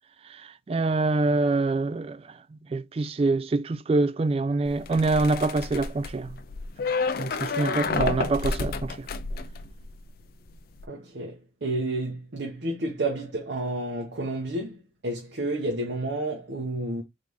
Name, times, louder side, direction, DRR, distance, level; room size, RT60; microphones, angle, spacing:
voice 1, 0.3-2.2 2.7-6.4 7.2-9.1, right 3 dB, 30° right, 0.3 m, -25 dB
sound 1, 4.7-10.2 10.5-10.9, left 4 dB, 50° left, 0.4 m, -30 dB
voice 2, 10.9-14.8 15.0-17.0, right 2 dB, 65° right, 0.9 m, -30 dB
3.9 x 3.2 x 3.3 m
head